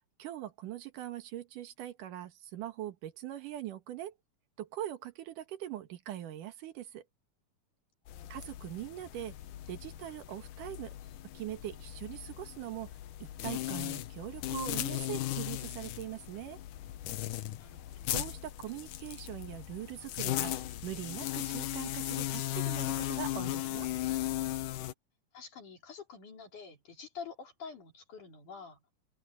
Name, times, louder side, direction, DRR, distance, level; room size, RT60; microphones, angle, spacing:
voice 1, 0.2-4.1 4.6-7.0 8.3-9.3 9.7-10.9 11.3-12.9 13.4-16.6 18.1-20.5 20.8-23.9, right 12 dB, 80° right, 3.0 m, -42 dB
sound 1, 8.1-24.9, left 14 dB, 90° left, 2.5 m, -37 dB
voice 2, 8.1-8.5 17.6-18.1 25.3-28.8, left 5 dB, 70° left, 5.6 m, -48 dB
open air
omnidirectional pair, 3.6 m